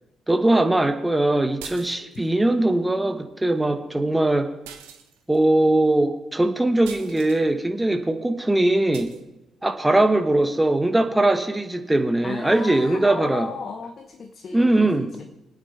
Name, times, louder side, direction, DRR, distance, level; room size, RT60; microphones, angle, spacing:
voice 1, 0.3-4.5 5.3-9.1 9.6-13.5 14.5-15.1, right 1 dB, 10° right, 7 dB, 1.4 m, -21 dB
sound 1, 1.6-2.3 4.6-5.4 6.8-7.4 8.9-9.2, right 9 dB, 75° right, 0.9 m, -43 dB
voice 2, 12.2-14.9 15.2-15.3, left 5 dB, 45° left, 6 dB, 0.9 m, -35 dB
25.0 x 9.1 x 3.4 m, 0.97 s
figure-of-eight pair, 45°, 0 cm